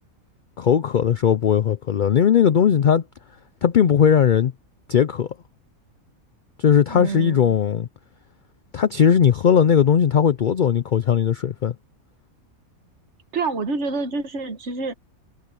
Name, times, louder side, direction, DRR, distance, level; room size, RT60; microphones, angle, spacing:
voice 1, 0.6-3.0 3.6-4.5 4.9-5.3 6.6-7.9 8.7-11.7, left 8 dB, 80° left, 0.4 m, -18 dB
voice 2, 6.9-7.6 13.3-14.9, right 4 dB, 50° right, 1.6 m, -27 dB
omnidirectional pair, 1.5 m